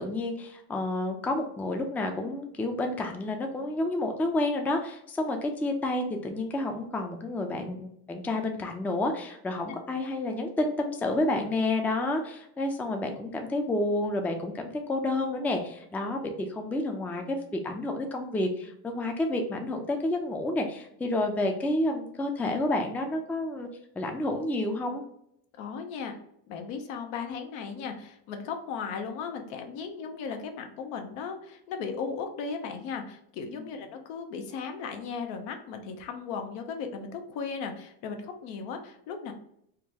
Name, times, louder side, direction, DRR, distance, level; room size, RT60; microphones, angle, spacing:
voice 1, 0.0-23.7 24.0-25.0, left 2 dB, 5° left, 4 dB, 0.3 m, -30 dB
voice 2, 25.6-26.2 26.5-39.3, left 5 dB, 85° left, 5 dB, 0.8 m, -36 dB
3.7 x 2.2 x 2.7 m, 0.73 s
supercardioid pair, 80°, 49 cm